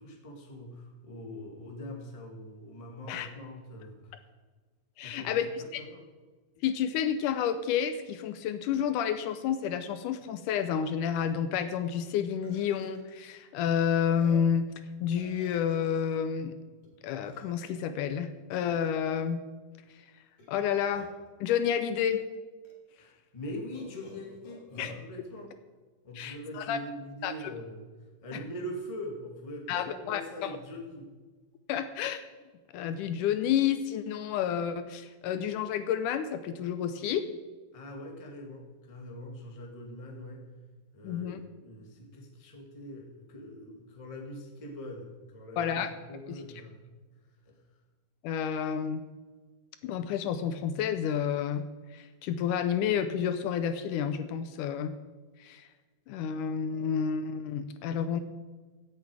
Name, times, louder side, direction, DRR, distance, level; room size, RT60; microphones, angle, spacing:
voice 1, 0.0-4.2 5.0-6.0 23.0-25.5 26.0-27.8 28.2-31.1 37.7-40.4 40.9-45.8 46.1-46.9 47.4-47.6, equal, 15° left, 0 dB, 1.1 m, -43 dB
voice 2, 5.0-5.8 6.6-14.7 15.0-16.5 17.0-19.4 20.5-21.1 21.4-22.3 24.8-24.9 26.2-26.8 27.2-27.3 29.7-30.6 31.7-32.2 32.7-37.2 41.0-41.4 45.6-45.9 48.2-49.1 49.8-51.6 51.9-54.9 55.4-55.6 56.1-58.2, left 8 dB, 80° left, 10 dB, 2.1 m, -30 dB
Burping eructation, 10.6-10.7 11.1-11.3 11.9-12.1 12.4-13.1 13.7-13.8 14.1-14.6 15.1-16.1 16.8-16.9 17.2-17.8 18.5-18.9 20.4-21.3 22.1-22.2 22.6-22.7 23.7-25.0, left 2 dB, 45° left, 4.3 m, -51 dB
16.0 x 8.2 x 4.8 m, 1.3 s
omnidirectional pair, 3.8 m